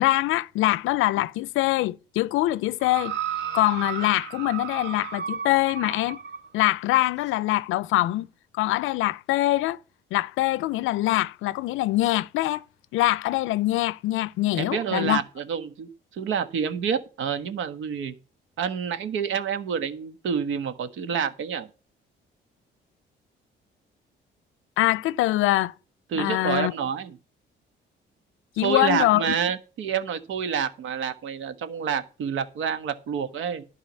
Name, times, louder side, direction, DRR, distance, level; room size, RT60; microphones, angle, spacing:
voice 1, 0.0-3.1 3.5-6.2 6.5-8.3 8.6-9.8 10.1-12.6 12.9-15.2 24.8-25.7 26.1-26.7 28.6-29.4, left 16 dB, 90° left, 0.5 m, -23 dB
sound 1, 2.8-6.5 7.3-7.4, right 8 dB, 60° right, 2.5 m, -33 dB
voice 2, 14.5-18.1 18.6-21.7 26.1-27.2 28.6-33.6, right 7 dB, 80° right, 1.4 m, -28 dB
11.5 x 4.9 x 8.2 m
cardioid pair, 90°, 20 cm